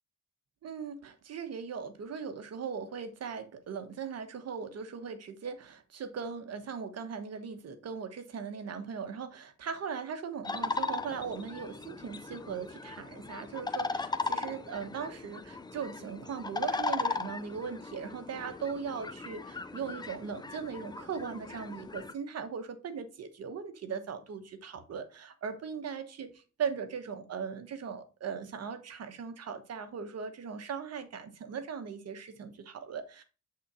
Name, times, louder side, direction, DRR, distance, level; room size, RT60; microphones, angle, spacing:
voice 1, 0.6-33.2, right 6 dB, 55° right, 1.2 m, -39 dB
sound 1, 10.4-22.1, left 3 dB, 15° left, 0.5 m, -37 dB
7.5 x 3.8 x 4.2 m
cardioid pair, 90°, 30 cm